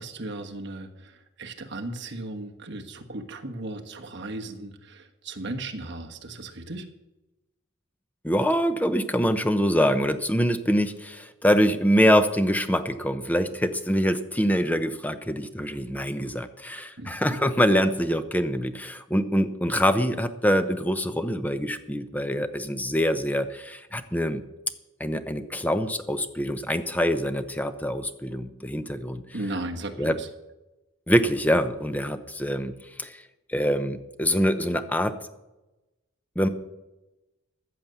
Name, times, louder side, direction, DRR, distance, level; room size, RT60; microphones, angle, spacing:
voice 1, 0.0-6.9 17.0-17.4 29.3-30.3, right 2 dB, 55° right, 3 dB, 1.4 m, -36 dB
voice 2, 8.2-24.4 25.0-29.2 30.0-30.2 31.1-35.2 36.4-36.5, equal, 5° left, 10 dB, 0.7 m, -25 dB
14.5 x 7.7 x 6.9 m, 1.0 s
head